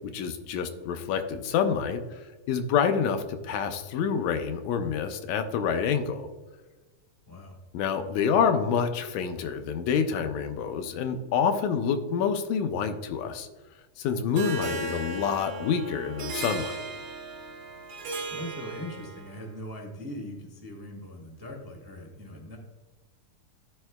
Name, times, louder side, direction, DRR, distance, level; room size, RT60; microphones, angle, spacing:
voice 1, 0.1-2.2 2.5-6.3 7.7-13.5 14.0-16.8, left 7 dB, 85° left, 7 dB, 2.1 m, -27 dB
voice 2, 7.3-7.6 18.3-22.6, left 1 dB, 15° right, 0 dB, 0.7 m, -40 dB
Harp, 14.4-19.4, right 2 dB, 60° right, 1.8 m, -36 dB
13.5 x 4.7 x 2.2 m, 1.2 s
omnidirectional pair, 3.3 m